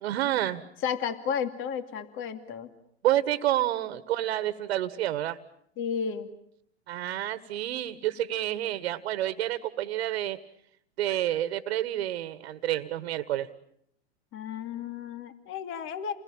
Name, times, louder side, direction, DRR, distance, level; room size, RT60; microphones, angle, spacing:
voice 1, 0.0-0.6 3.0-5.4 6.9-10.4 11.0-13.5, right 13 dB, 70° right, 13 dB, 1.6 m, -29 dB
voice 2, 0.8-2.7 5.8-6.3 14.3-16.1, left 7 dB, 35° left, 9 dB, 2.6 m, -32 dB
30.0 x 21.0 x 8.9 m, 0.73 s
hypercardioid pair, 110°, 33 cm